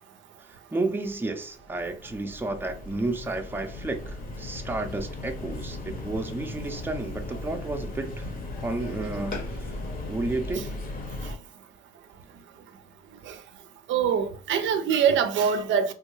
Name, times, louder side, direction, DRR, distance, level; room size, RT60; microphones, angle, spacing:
voice 1, 0.4-8.3 8.6-9.8 10.1-10.7, right 2 dB, 10° right, 0.5 m, -32 dB
sound 1, 1.5-11.3, left 2 dB, 45° left, 0.9 m, -37 dB
voice 2, 13.9-15.9, right 7 dB, 70° right, 0.5 m, -24 dB
3.5 x 2.2 x 3.0 m
cardioid pair, 90°, 20 cm